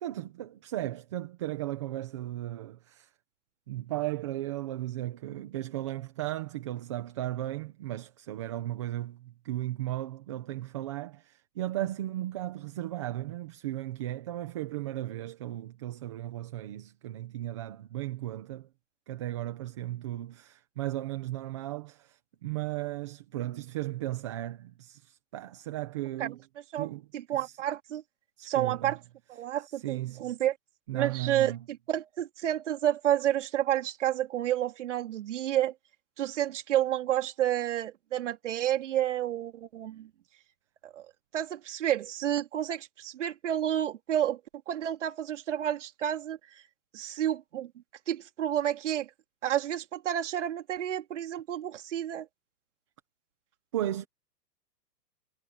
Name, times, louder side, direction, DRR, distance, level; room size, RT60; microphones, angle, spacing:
voice 1, 0.0-3.1 3.7-18.7 19.1-26.4 26.8-27.0 27.3-27.6 28.4-29.0 29.7-30.3 30.9-31.6 53.7-54.1, right 14 dB, 20° right, 1.0 m, -36 dB
voice 2, 27.1-28.0 28.4-29.0 29.3-30.6 30.9-35.7 36.2-40.1 40.8-41.0 41.3-44.4 44.7-46.6 46.9-47.7 48.1-49.1 49.4-52.3, right 11 dB, 45° right, 4.0 m, -30 dB
hypercardioid pair, 180°, 49 cm